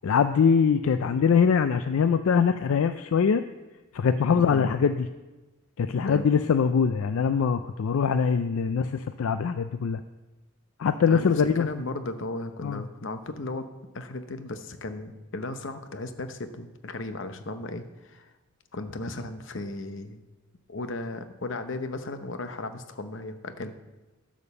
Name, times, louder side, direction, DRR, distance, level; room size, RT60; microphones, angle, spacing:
voice 1, 0.0-3.4 3.9-5.1 5.8-10.0 10.8-11.7 12.6-12.8, left 6 dB, 75° left, 10 dB, 0.4 m, -23 dB
voice 2, 4.3-4.7 6.0-6.3 11.1-13.7 13.9-18.3 18.7-20.2 20.7-23.7, left 2 dB, 60° left, 9 dB, 0.8 m, -35 dB
11.0 x 5.2 x 6.9 m, 1.2 s
head